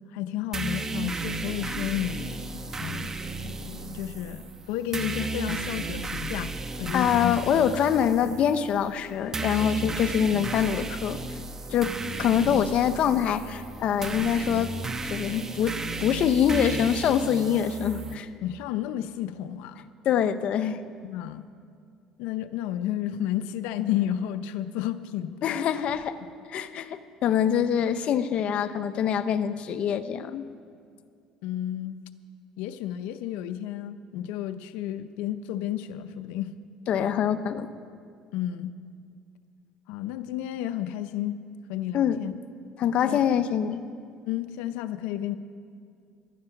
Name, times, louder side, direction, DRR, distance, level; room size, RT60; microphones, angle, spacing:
voice 1, 0.1-2.4 2.8-3.1 3.4-7.5 18.4-19.8 21.0-21.5 22.2-25.4 31.4-32.0 32.6-36.5 38.3-38.7 39.9-41.4 41.7-42.4 43.1-43.2 44.3-45.4, left 11 dB, 85° left, 10 dB, 0.6 m, -32 dB
sound 1, 0.5-18.1, right 3 dB, 20° right, 1.0 m, -34 dB
voice 2, 6.9-11.4 11.7-14.7 15.0-15.7 16.0-18.3 20.0-20.8 25.4-26.2 26.5-30.5 36.9-37.7 41.9-42.2 42.8-43.8, left 8 dB, 55° left, 11 dB, 0.8 m, -25 dB
17.5 x 12.0 x 5.9 m, 2.3 s
cardioid pair, 110°, 2 cm